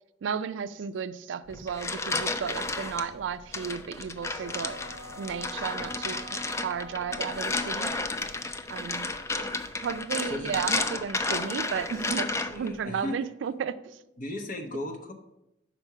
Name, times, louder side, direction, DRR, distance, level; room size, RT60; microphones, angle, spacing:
voice 1, 0.2-4.8 5.2-7.9 8.7-9.1 9.8-14.0, right 6 dB, 75° right, 0.3 m, -34 dB
sound 1, 1.4-12.9, equal, 80° left, 1.9 m, -54 dB
sound 2, 1.5-3.0 3.5-12.7, left 3 dB, 15° left, 0.3 m, -32 dB
Wind instrument woodwind instrument, 4.2-8.6, right 1 dB, 45° right, 0.8 m, -46 dB
voice 2, 9.3-9.6 10.2-10.6 12.4-13.2 14.2-15.1, left 1 dB, 45° left, 0.9 m, -37 dB
5.9 x 4.4 x 5.6 m
head